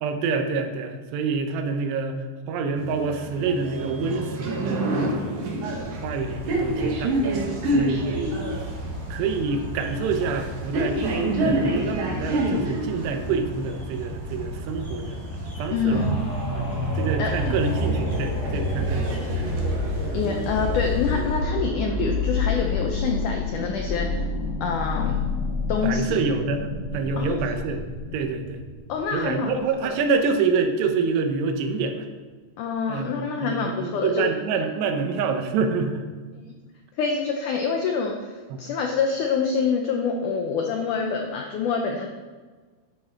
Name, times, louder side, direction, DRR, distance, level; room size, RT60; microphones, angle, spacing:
voice 1, 0.0-2.2 2.5-7.2 7.7-8.4 9.1-11.0 11.4-15.2 15.6-16.1 16.5-16.7 17.0-19.4 25.8-26.7 26.9-27.8 28.1-28.6 29.1-32.1 32.9-36.1 38.5-38.6, right 4 dB, 90° right, 6 dB, 3.1 m, -27 dB
sound 1, 2.8-21.2, right 1 dB, 60° right, 3.2 m, -30 dB
sound 2, 5.7-21.4, equal, 35° right, 4.1 m, -36 dB
voice 2, 15.7-16.2 17.2-17.5 20.1-24.1 24.6-25.2 25.7-26.2 27.2-27.4 28.9-29.5 29.8-30.0 32.6-34.3 37.0-38.3 38.6-42.1, left 5 dB, 85° left, 2 dB, 1.7 m, -26 dB
sound 3, 15.9-29.5 30.0-30.1, left 2 dB, 30° left, 1.4 m, -28 dB
10.5 x 10.0 x 4.4 m, 1.4 s
omnidirectional pair, 4.7 m